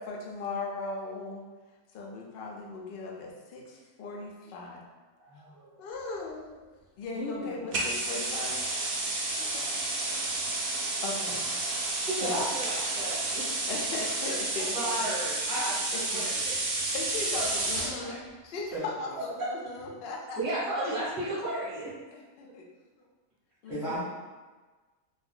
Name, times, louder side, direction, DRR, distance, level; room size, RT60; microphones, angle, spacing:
voice 1, 0.0-1.4 1.9-4.8 5.8-8.6 9.4-10.2 11.0-11.5 12.2-12.4 13.7-14.9 15.5-16.2 16.9-20.4 22.1-23.1 23.6-24.0, left 3 dB, 70° left, -1 dB, 0.5 m, -38 dB
voice 2, 5.2-5.9 7.1-7.5 12.0-13.5 14.3-14.4 14.7-15.8 16.1-16.5 19.4-19.5 20.3-21.9, right 1 dB, 25° right, -9 dB, 0.9 m, -33 dB
sound 1, 7.7-18.0, right 2 dB, 80° right, 0.5 m, -31 dB
voice 3, 17.9-18.2 18.7-18.8 23.7-24.0, right 2 dB, 25° left, -10 dB, 0.6 m, -35 dB
2.5 x 2.2 x 3.5 m, 1.3 s
omnidirectional pair, 1.6 m